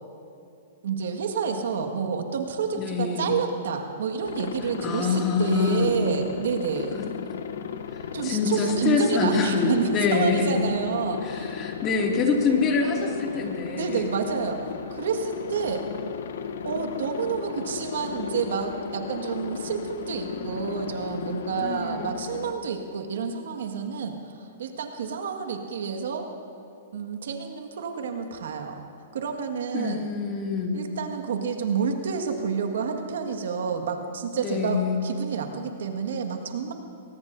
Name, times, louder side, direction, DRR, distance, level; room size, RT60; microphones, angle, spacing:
voice 1, 0.8-7.0 8.1-11.6 13.7-15.8 16.6-26.3 26.9-28.8 29.1-30.0 30.7-36.7, right 6 dB, 75° right, 4 dB, 1.8 m, -29 dB
voice 2, 2.7-3.3 4.8-5.9 6.9-7.1 7.9-10.6 11.2-14.0 21.6-22.1 29.7-30.8 34.4-35.0, left 4 dB, 30° left, 0 dB, 2.4 m, -25 dB
Aircraft, 4.2-22.5, left 7 dB, 70° left, 0.9 m, -35 dB
23.0 x 19.0 x 2.7 m, 2.6 s
hypercardioid pair, 135°, 0 cm